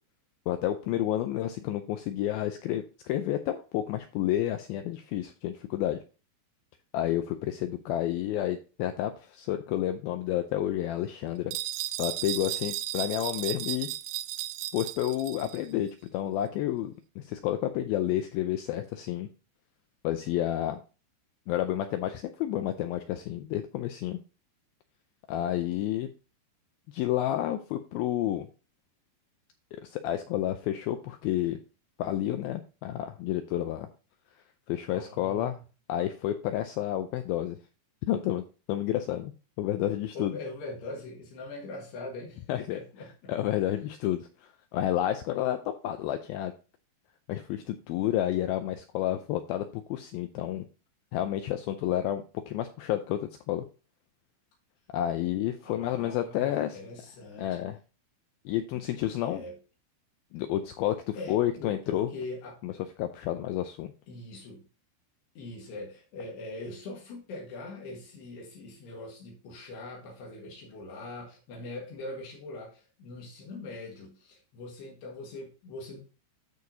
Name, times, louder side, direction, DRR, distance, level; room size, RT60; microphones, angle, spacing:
voice 1, 0.5-6.0 6.9-11.5 12.0-13.9 14.7-19.3 20.0-20.8 21.5-24.2 25.3-26.1 26.9-28.5 29.8-31.6 32.0-33.9 34.7-35.6 35.9-37.6 38.1-39.3 39.6-40.3 42.5-42.8 43.3-46.5 47.3-50.7 51.1-53.6 54.9-56.8 57.4-57.8 58.5-59.4 60.3-62.1 62.6-62.7 63.0-63.9, left 12 dB, 90° left, 8 dB, 2.1 m, -30 dB
sound 1, 11.5-15.6, right 15 dB, 85° right, 2.7 m, -35 dB
voice 2, 34.9-35.6 39.7-43.3 55.6-57.7 59.2-59.6 61.2-62.6 64.1-64.6 65.4-76.0, left 2 dB, 75° left, -1 dB, 3.6 m, -42 dB
13.5 x 4.7 x 2.7 m, 0.33 s
omnidirectional pair, 4.9 m